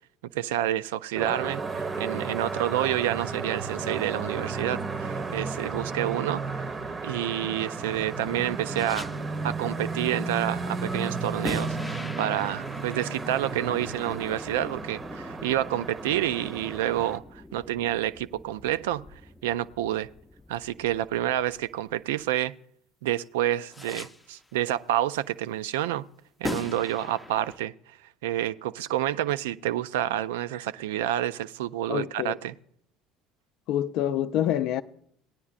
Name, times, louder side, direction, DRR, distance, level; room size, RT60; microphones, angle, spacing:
voice 1, 0.3-6.7 7.0-9.1 9.4-19.0 19.4-20.1 20.5-22.5 23.0-26.1 26.4-28.0 28.2-32.5, right 12 dB, 70° right, 0.3 m, -29 dB
sound 1, 1.1-17.2, right 4 dB, 30° right, 0.7 m, -33 dB
sound 2, 8.7-9.6 11.4-22.4 23.7-24.5 26.4-27.6, left 2 dB, 10° left, 0.5 m, -41 dB
voice 2, 31.9-32.3 33.7-34.8, left 11 dB, 60° left, 0.4 m, -26 dB
17.5 x 9.9 x 2.4 m
figure-of-eight pair, 65°, 0 cm